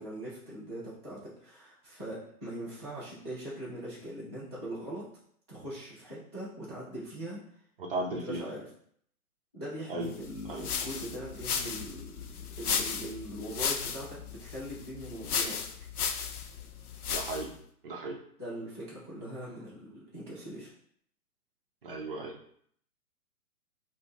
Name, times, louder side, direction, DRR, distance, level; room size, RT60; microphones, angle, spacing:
voice 1, 0.0-5.0 5.5-7.4 8.0-8.7 9.5-12.2 12.6-15.6 18.4-20.7, right 1 dB, 20° left, -8 dB, 0.3 m, -41 dB
voice 2, 7.8-8.5 9.9-10.1 10.5-10.7 17.1-17.5 17.8-18.2 21.8-22.3, right 2 dB, 40° right, 0 dB, 0.5 m, -35 dB
sound 1, 10.2-17.6, left 6 dB, 75° left, 0.5 m, -35 dB
3.8 x 2.0 x 3.0 m, 0.64 s
figure-of-eight pair, 130°, 46 cm